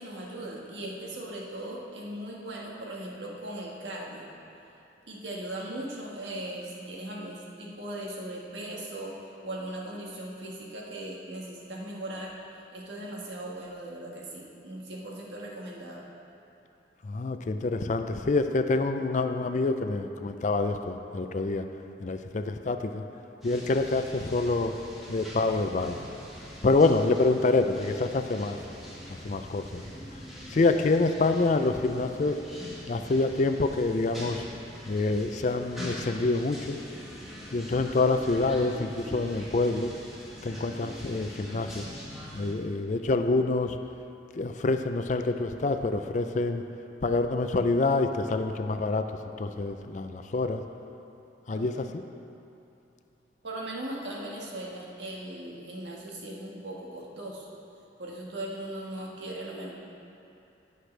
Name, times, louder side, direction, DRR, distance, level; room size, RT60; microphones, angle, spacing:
voice 1, 0.0-4.3 5.1-9.1 9.4-12.3 12.7-16.0 51.5-51.7 51.9-52.0 53.4-57.5 58.0-59.7, right 1 dB, 85° right, -3 dB, 1.6 m, -38 dB
voice 2, 17.0-21.7 22.0-23.0 23.4-24.7 25.1-26.0 26.6-28.6 29.2-29.8 30.5-32.4 32.9-34.5 34.9-36.8 37.5-39.9 40.4-41.8 42.3-43.8 44.4-46.6 47.0-49.1 49.4-50.6 51.5-51.7, left 3 dB, 45° left, 7 dB, 0.4 m, -26 dB
sound 1, 23.4-42.5, equal, ahead, 1.9 m, -43 dB
16.0 x 6.6 x 3.3 m, 2.8 s
head